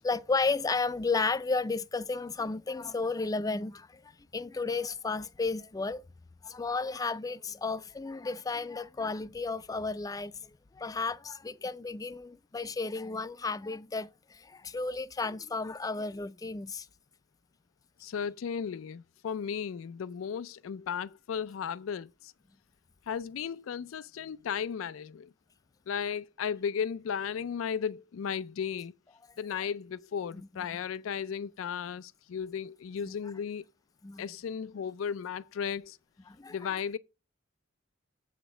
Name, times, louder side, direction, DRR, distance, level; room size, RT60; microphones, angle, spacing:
voice 1, 0.0-4.0 4.3-6.0 6.4-16.9 30.3-30.8 33.0-33.1 34.0-34.3 36.3-36.7, left 3 dB, 20° left, 0.4 m, -33 dB
voice 2, 18.0-22.3 23.1-25.3 25.9-28.9 29.4-33.6 34.2-36.0 36.5-37.0, left 7 dB, 90° left, 0.4 m, -35 dB
7.8 x 5.0 x 7.3 m
head